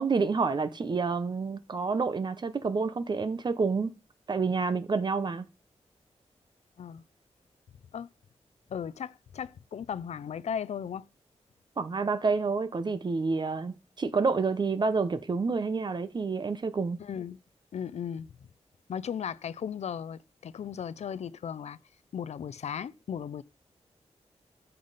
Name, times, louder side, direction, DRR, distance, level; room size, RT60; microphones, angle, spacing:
voice 1, 0.0-3.9 4.3-5.5 11.8-17.0, right 4 dB, 40° right, 0.8 m, -28 dB
voice 2, 8.7-11.1 17.0-17.4 17.7-18.3 18.9-21.8 22.1-23.4, left 8 dB, 70° left, 0.5 m, -36 dB
13.5 x 5.5 x 4.1 m
wide cardioid pair, 150°, 12 cm